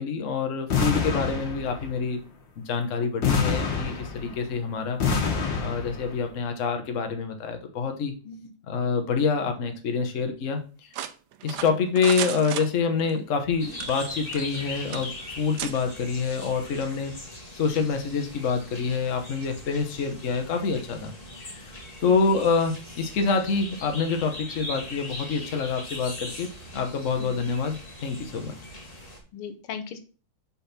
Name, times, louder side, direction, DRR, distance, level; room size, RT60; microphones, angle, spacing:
voice 1, 0.0-2.2 2.6-5.3 5.6-8.1 8.7-10.6 11.4-17.1 17.5-21.7 22.0-28.5, left 5 dB, 45° left, 5 dB, 1.1 m, -27 dB
sound 1, 0.7-2.0 3.2-4.5 5.0-6.1, left 5 dB, 65° left, 2.1 m, -26 dB
sound 2, 10.9-13.2 13.7-14.6 14.9-15.1 15.6-15.7, right 10 dB, 75° right, 1.0 m, -34 dB
sound 3, 13.6-29.2, left 1 dB, 20° left, 1.3 m, -41 dB
voice 2, 29.3-30.0, left 7 dB, 85° left, 8 dB, 1.8 m, -38 dB
5.7 x 4.3 x 5.7 m, 0.36 s
omnidirectional pair, 2.3 m